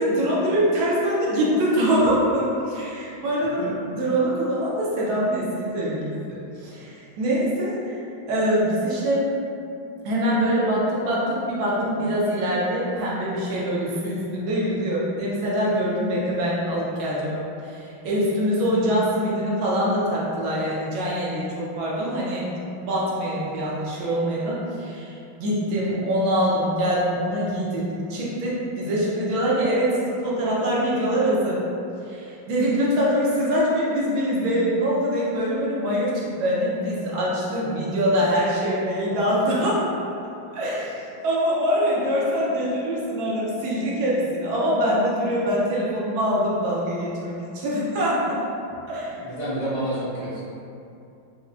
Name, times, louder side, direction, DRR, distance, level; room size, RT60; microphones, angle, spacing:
voice 1, 0.0-8.0 8.3-9.3 10.0-22.5 22.8-25.1 25.4-31.6 32.0-39.8 40.5-48.4 48.9-49.2, equal, 75° right, -6 dB, 1.5 m, -24 dB
voice 2, 49.2-50.4, right 1 dB, 45° right, -14 dB, 0.4 m, -28 dB
4.6 x 2.1 x 2.4 m, 2.6 s
omnidirectional pair, 2.2 m